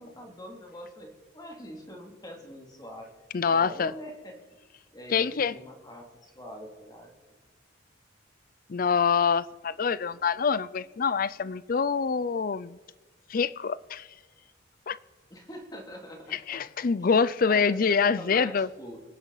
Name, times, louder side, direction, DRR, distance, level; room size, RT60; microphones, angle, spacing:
voice 1, 0.0-3.1 3.4-4.3 4.9-7.1 15.3-16.6 17.0-17.1 17.5-19.0, equal, 20° left, 2.6 m, -44 dB
voice 2, 3.3-3.9 5.1-5.6 8.7-12.8 13.3-14.1 14.9-15.0 16.3-18.7, left 5 dB, 45° left, 0.4 m, -25 dB
25.0 x 10.5 x 4.0 m
head